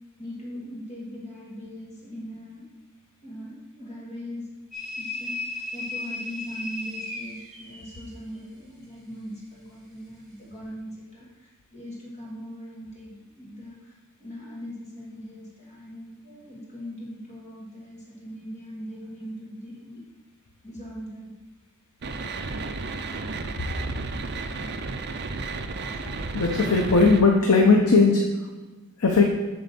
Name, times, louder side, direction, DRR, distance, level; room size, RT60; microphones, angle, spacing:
voice 1, 0.2-2.6 3.2-4.4 5.0-5.4 5.7-13.7 14.2-20.0 20.6-21.3 22.8-23.0 23.3-23.9 25.4-26.8, equal, 30° left, -6 dB, 2.3 m, -40 dB
sound 1, 4.7-8.0, left 2 dB, ahead, 2.3 m, -35 dB
sound 2, 22.0-27.2, right 3 dB, 45° right, 0.5 m, -33 dB
voice 2, 26.3-28.3 29.0-29.2, left 4 dB, 85° left, 1 dB, 0.8 m, -18 dB
7.8 x 4.0 x 6.8 m, 1.2 s
head